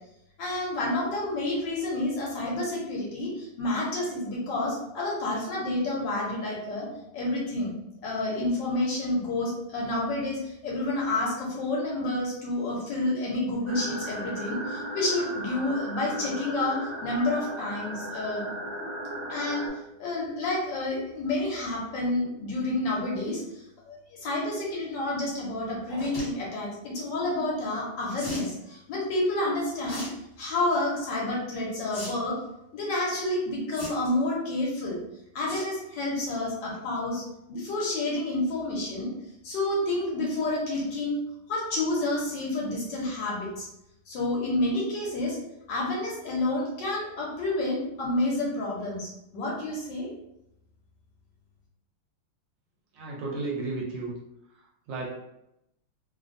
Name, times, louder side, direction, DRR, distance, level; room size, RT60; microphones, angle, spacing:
voice 1, 0.4-6.9 7.1-7.7 8.0-18.5 19.3-30.1 30.4-32.4 32.7-35.0 35.3-39.1 39.4-41.2 41.5-43.7 44.1-45.4 45.7-50.1, left 2 dB, 65° left, -4 dB, 1.3 m, -29 dB
sound 1, 13.7-19.7, right 1 dB, 10° right, 0.5 m, -36 dB
sound 2, 25.9-26.3 28.2-28.5 29.8-30.1 30.5-30.8 31.9-32.1 32.4-32.5 33.7-34.2 35.5-35.7 36.1-36.4 36.7-36.8 37.0-37.1, left 1 dB, 35° left, 1.4 m, -38 dB
voice 2, 52.9-54.1 54.9-55.1, right 3 dB, 75° right, -3 dB, 1.1 m, -33 dB
3.3 x 2.1 x 2.5 m, 0.84 s
omnidirectional pair, 2.3 m